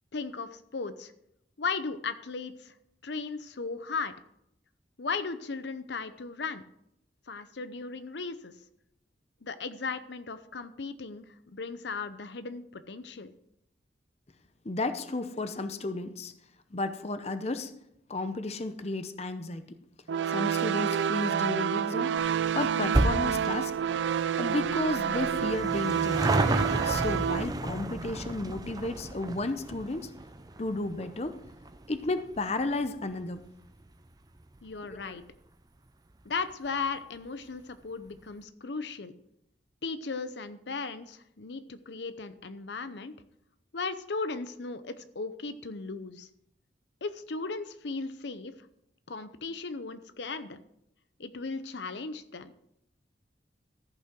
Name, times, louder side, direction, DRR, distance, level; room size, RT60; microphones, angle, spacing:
voice 1, 0.1-1.1 1.6-2.7 3.0-4.1 5.0-6.6 7.3-8.5 9.4-13.3 34.6-35.2 36.2-39.1 39.8-43.1 43.7-46.3 47.0-48.5 49.1-50.6 51.2-52.5, left 4 dB, 75° left, 12 dB, 0.7 m, -36 dB
voice 2, 14.6-16.3 16.7-17.7 18.1-19.6 20.3-22.2 22.5-23.7 24.4-26.4 26.8-30.1 30.6-31.4 31.9-33.4 34.9-35.2, left 2 dB, 35° left, 10 dB, 0.7 m, -33 dB
sound 1, 20.1-27.4, right 8 dB, 90° right, 0.4 m, -28 dB
sound 2, 22.2-34.9 35.2-35.3 36.2-36.3 36.5-36.6 36.9-37.0, right 2 dB, 20° right, 0.6 m, -33 dB
14.5 x 5.8 x 6.0 m, 0.77 s
head